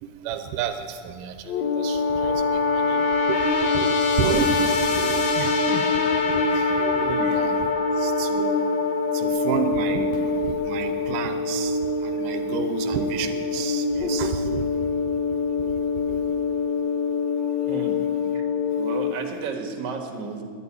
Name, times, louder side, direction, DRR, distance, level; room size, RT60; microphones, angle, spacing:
voice 1, 0.0-5.8 6.2-7.6 8.0-8.7 9.1-14.6 15.6-15.7 16.1-16.2 18.4-18.5, right 8 dB, 85° right, 7 dB, 2.4 m, -31 dB
sound 1, 1.5-19.1, left 4 dB, 65° left, 2.1 m, -24 dB
voice 2, 17.7-18.0 18.8-20.4, right 4 dB, 45° right, 2 dB, 1.7 m, -33 dB
11.5 x 9.4 x 9.8 m, 2.1 s
omnidirectional pair, 3.7 m